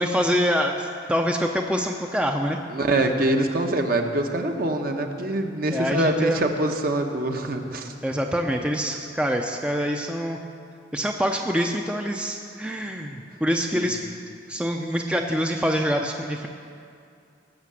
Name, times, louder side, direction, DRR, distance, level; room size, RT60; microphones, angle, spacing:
voice 1, 0.0-2.6 5.7-6.4 8.0-10.4 10.9-14.1 14.5-16.5, equal, 5° right, 3 dB, 0.5 m, -25 dB
voice 2, 2.7-7.9 13.7-13.9, right 1 dB, 50° right, 4 dB, 1.1 m, -24 dB
18.5 x 6.7 x 7.5 m, 2.4 s
head